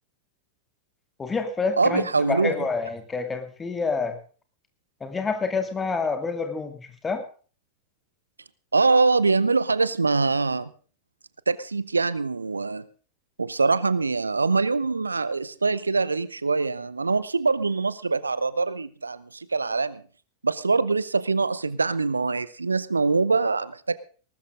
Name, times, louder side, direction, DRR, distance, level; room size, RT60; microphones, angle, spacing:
voice 1, 1.2-4.2 5.0-7.2, left 4 dB, 15° left, 7 dB, 2.4 m, -28 dB
voice 2, 1.8-2.5 8.7-10.7 11.5-12.9 13.4-20.0 20.4-24.0, right 4 dB, 80° right, 18 dB, 0.6 m, -23 dB
19.5 x 13.0 x 3.7 m, 0.39 s
figure-of-eight pair, 90°, 0 cm